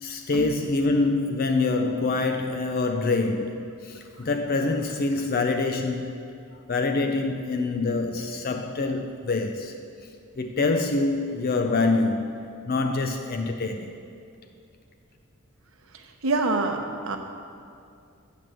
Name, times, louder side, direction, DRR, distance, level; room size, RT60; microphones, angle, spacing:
voice 1, 0.0-6.1 6.7-9.7 10.4-13.9, left 3 dB, 45° left, 6 dB, 0.5 m, -25 dB
voice 2, 16.2-17.2, right 3 dB, 65° right, 4 dB, 0.9 m, -25 dB
7.6 x 6.8 x 7.6 m, 2.4 s
head